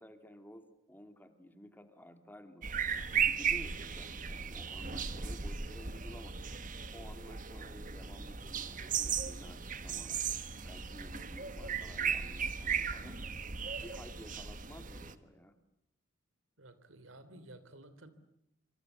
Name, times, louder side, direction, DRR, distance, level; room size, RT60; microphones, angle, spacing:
voice 1, 0.0-2.7 3.1-6.5 6.9-10.3 10.6-13.2 13.8-15.5, equal, 10° left, 8 dB, 2.4 m, -53 dB
sound 1, 2.6-15.1, right 7 dB, 40° right, 1.3 m, -36 dB
voice 2, 16.6-18.1, right 1 dB, 90° right, 13 dB, 3.2 m, -53 dB
27.0 x 25.5 x 8.3 m, 0.79 s
head